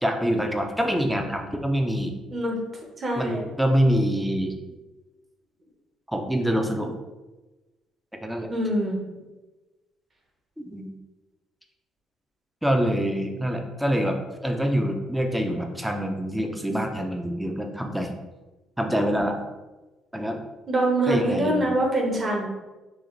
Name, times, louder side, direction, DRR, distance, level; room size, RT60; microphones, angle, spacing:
voice 1, 0.0-2.1 3.2-4.5 6.1-6.9 8.2-8.5 10.6-10.9 12.6-14.2 14.4-18.1 18.8-19.4 20.1-20.4 21.1-21.6, equal, 5° right, 4 dB, 0.6 m, -25 dB
voice 2, 3.0-3.4 3.8-3.9 8.5-9.0 20.7-22.5, right 1 dB, 35° right, 0 dB, 1.2 m, -24 dB
6.2 x 2.5 x 3.2 m, 1.1 s
cardioid pair, 105°, 0 cm